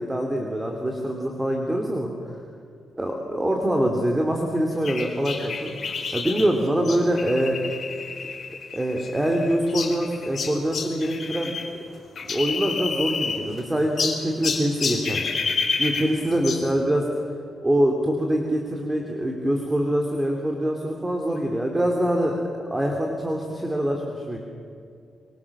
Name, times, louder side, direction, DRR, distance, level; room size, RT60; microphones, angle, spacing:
voice 1, 0.0-2.1 3.0-7.5 8.7-11.5 12.3-15.2 15.8-17.1 17.6-22.4 22.7-24.4, right 1 dB, 10° right, 2 dB, 2.9 m, -24 dB
sound 1, 4.8-11.7 11.9-13.6 14.0-16.7, left 5 dB, 50° left, 4.8 m, -29 dB
26.0 x 23.5 x 7.3 m, 2.4 s
cardioid pair, 130°, 0 cm